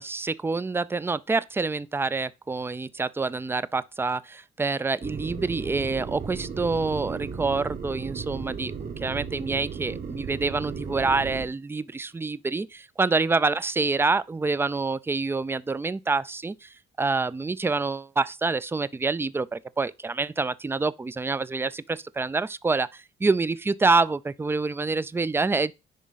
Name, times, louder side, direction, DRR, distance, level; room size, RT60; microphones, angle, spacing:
voice 1, 0.0-25.7, right 3 dB, 10° right, 0.3 m, -27 dB
sound 1, 5.0-11.5, right 6 dB, 50° right, 1.2 m, -35 dB
10.5 x 3.6 x 3.9 m
cardioid pair, 90°, 20 cm